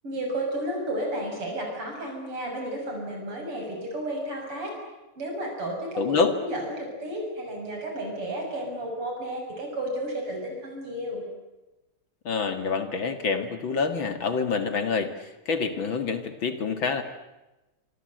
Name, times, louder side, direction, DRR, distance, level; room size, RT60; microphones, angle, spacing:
voice 1, 0.0-4.7 5.2-11.2, right 1 dB, 85° right, 1 dB, 7.7 m, -32 dB
voice 2, 6.0-6.3 12.2-17.0, left 5 dB, 60° left, 8 dB, 2.8 m, -27 dB
26.5 x 26.0 x 7.9 m, 1.0 s
omnidirectional pair, 2.4 m